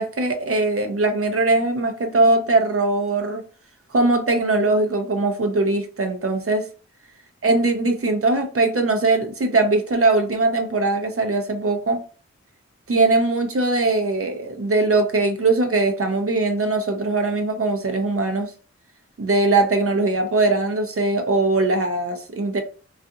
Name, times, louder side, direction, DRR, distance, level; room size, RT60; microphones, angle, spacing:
voice 1, 0.0-3.4 3.9-6.7 7.4-12.0 12.9-18.5 19.2-22.6, right 2 dB, 50° right, 0.6 m, -21 dB
2.6 x 2.4 x 2.4 m
cardioid pair, 45°, 30 cm